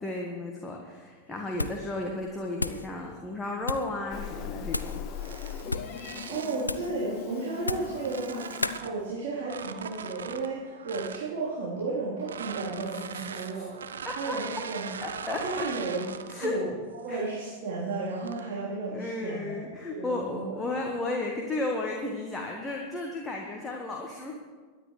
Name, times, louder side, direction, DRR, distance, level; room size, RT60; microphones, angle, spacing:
voice 1, 0.0-5.0 13.1-13.6 14.0-14.1 15.0-15.7 16.3-16.6 17.1-17.2 18.9-24.3, left 2 dB, 15° left, 0 dB, 1.5 m, -34 dB
sound 1, 1.5-1.9 2.2-2.9 3.6-3.9 4.7-5.0 5.6-6.0 6.6-7.0 7.6-8.0 8.6-8.8, left 2 dB, 85° left, 0.4 m, -33 dB
Meow, 4.1-8.8, left 8 dB, 40° left, 0.8 m, -39 dB
sound 2, 5.1-6.7 7.4-9.0 9.4-11.3 12.2-16.6 17.1-17.4 18.0-18.6, right 7 dB, 65° right, 0.7 m, -41 dB
voice 2, 5.9-13.7 14.1-14.9 15.4-16.1 16.4-16.7 17.0-19.5 19.9-20.7, right 3 dB, 50° right, -8 dB, 3.7 m, -33 dB
22.5 x 10.0 x 3.3 m, 1.4 s
figure-of-eight pair, 90°, 0 cm